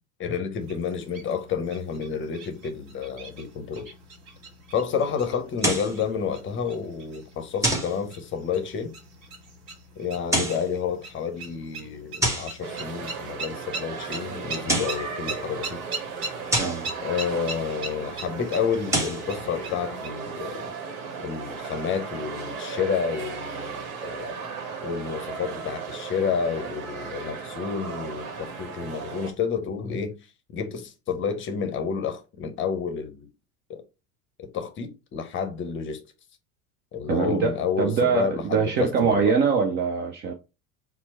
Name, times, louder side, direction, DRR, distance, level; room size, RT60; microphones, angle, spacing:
voice 1, 0.2-3.9 4.7-8.9 10.0-15.8 17.0-20.7 21.2-24.4 24.8-30.2 30.5-33.3 33.7-33.8 34.4-36.0 36.9-39.3, left 6 dB, 25° left, 0.7 m, -30 dB
sound 1, 0.6-20.1, right 3 dB, 50° right, 1.7 m, -41 dB
sound 2, 5.6-6.0 7.6-8.0 10.2-10.7 12.2-12.6 14.5-15.0 16.5-16.9 18.7-19.3, right 1 dB, 5° right, 0.9 m, -26 dB
sound 3, 12.6-29.3, right 5 dB, 65° right, 1.1 m, -36 dB
voice 2, 16.6-16.9 37.1-40.3, right 5 dB, 25° right, 0.4 m, -23 dB
4.3 x 2.0 x 4.2 m
figure-of-eight pair, 80°, 45 cm